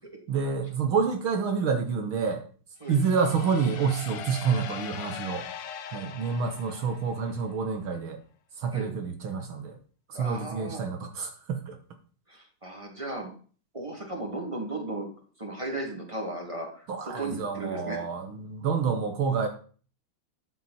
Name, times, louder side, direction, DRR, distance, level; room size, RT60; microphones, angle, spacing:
voice 1, 0.3-2.4 2.9-5.5 5.9-8.2 8.6-9.8 10.1-11.8 16.9-19.5, right 5 dB, 70° right, 6 dB, 2.1 m, -28 dB
sound 1, 2.8-7.5, left 9 dB, 85° left, 1.9 m, -41 dB
voice 2, 10.1-10.8 12.3-13.3 13.7-15.1 15.4-16.9 17.2-18.0, right 2 dB, 15° right, 1 dB, 2.9 m, -35 dB
13.5 x 8.6 x 4.4 m, 0.41 s
omnidirectional pair, 2.4 m